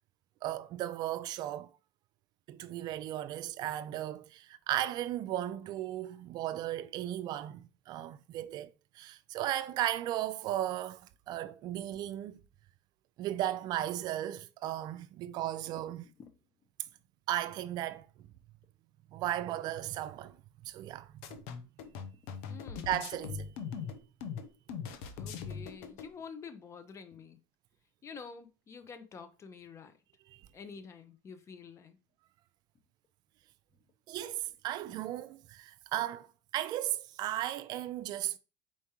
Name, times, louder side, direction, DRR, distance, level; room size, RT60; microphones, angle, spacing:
voice 1, 0.4-1.7 2.5-12.4 13.2-16.1 17.3-18.1 19.1-20.4 20.6-21.1 22.9-23.5 30.3-30.5 34.1-38.4, right 13 dB, 55° right, 0.3 m, -36 dB
sound 1, 21.2-26.1, left 6 dB, 75° left, 0.7 m, -41 dB
voice 2, 22.5-23.0 25.2-27.4 28.0-29.9 30.5-32.0, left 5 dB, 35° left, 0.7 m, -48 dB
4.3 x 3.6 x 2.9 m
supercardioid pair, 90°, 8 cm